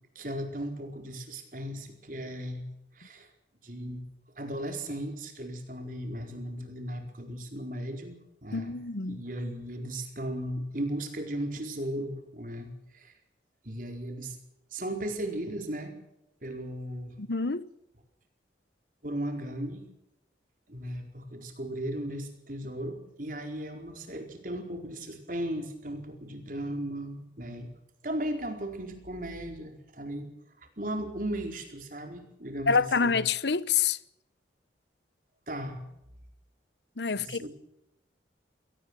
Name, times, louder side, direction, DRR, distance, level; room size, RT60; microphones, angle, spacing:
voice 1, 0.1-2.7 2.9-3.3 3.6-4.0 4.4-8.7 9.1-13.1 13.6-14.4 14.7-15.9 16.4-17.2 19.0-19.8 20.7-27.7 28.0-30.3 30.8-33.2 35.5-35.8 37.1-37.5, right 1 dB, 45° right, 4.5 m, -36 dB
voice 2, 8.5-9.2 17.2-17.6 32.7-34.0 37.0-37.5, left 5 dB, 70° left, 0.9 m, -27 dB
23.0 x 18.5 x 6.3 m
head